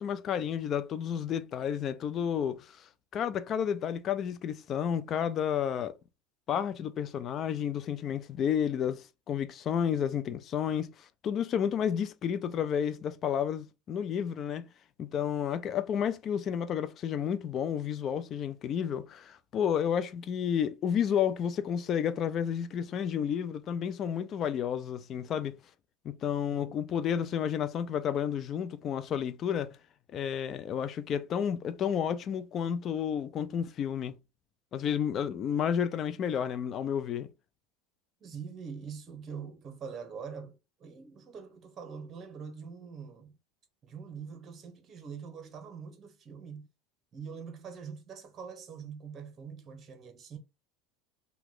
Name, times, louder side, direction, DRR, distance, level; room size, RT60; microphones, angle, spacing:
voice 1, 0.0-5.9 6.5-14.6 15.0-25.6 26.0-29.8 30.1-34.1 34.7-37.3, left 8 dB, 40° left, 0.4 m, -31 dB
voice 2, 38.2-43.4 43.8-46.7 47.1-50.4, right 6 dB, 35° right, 0.9 m, -44 dB
2.9 x 2.3 x 3.7 m
supercardioid pair, 110°, 0 cm